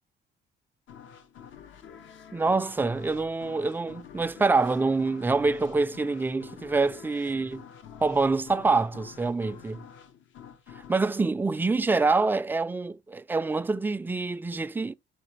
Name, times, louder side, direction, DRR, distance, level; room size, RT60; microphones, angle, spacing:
sound 1, 0.9-12.3, left 8 dB, 75° left, 0.8 m, -48 dB
voice 1, 2.3-7.6 8.0-9.8 10.9-14.9, right 3 dB, 10° right, 0.3 m, -26 dB
5.8 x 2.4 x 3.1 m
cardioid pair, 90°, 20 cm